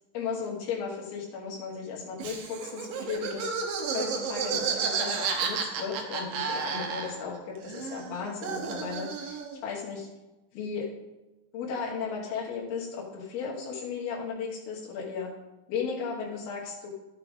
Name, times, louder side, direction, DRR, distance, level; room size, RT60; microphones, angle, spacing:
voice 1, 0.1-3.5 3.9-10.1 10.5-10.9 11.5-15.3 15.7-16.9, left 6 dB, 85° left, -4 dB, 3.3 m, -35 dB
Laughter, 2.2-7.4 7.6-9.6, right 5 dB, 70° right, 2.5 m, -32 dB
13.0 x 6.7 x 3.6 m, 1.0 s
omnidirectional pair, 4.4 m